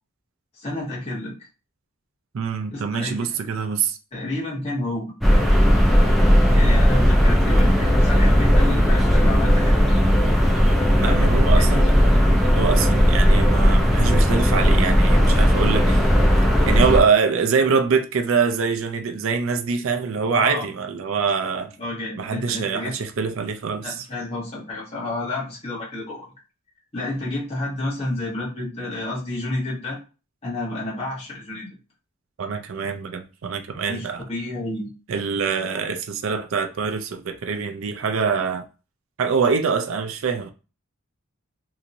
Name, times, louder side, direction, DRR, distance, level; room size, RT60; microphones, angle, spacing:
voice 1, 0.6-1.3 2.7-3.4 4.1-5.1 6.5-9.7 11.0-11.8 20.3-20.6 21.8-22.9 23.8-26.3 26.9-30.0 30.4-31.7 33.9-34.9, left 2 dB, 30° left, 1.0 m, -30 dB
voice 2, 2.3-4.0 11.0-11.9 12.6-16.1 16.6-21.7 22.2-24.1 32.4-34.2 35.1-38.7 39.2-40.5, right 5 dB, 75° right, 0.4 m, -24 dB
sound 1, 5.2-17.0, equal, ahead, 0.4 m, -16 dB
2.9 x 2.6 x 2.5 m
head